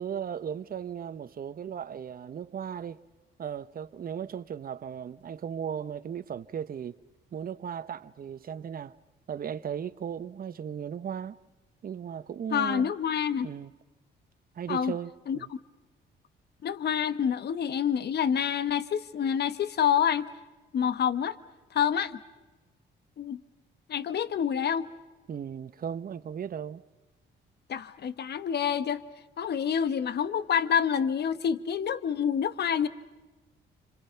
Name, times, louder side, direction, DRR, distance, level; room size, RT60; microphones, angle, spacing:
voice 1, 0.0-3.0 3.4-7.0 7.3-8.9 9.3-11.4 11.8-12.9 13.4-13.7 14.5-15.5 25.3-26.8, right 8 dB, 45° right, 1.0 m, -36 dB
voice 2, 12.5-13.5 14.7-14.9 15.3-15.4 16.6-20.3 20.7-21.4 21.7-22.2 23.2-23.4 23.9-24.9 27.7-29.0 29.4-32.9, left 8 dB, 55° left, 1.2 m, -27 dB
30.0 x 26.0 x 5.8 m
cardioid pair, 90°, 20 cm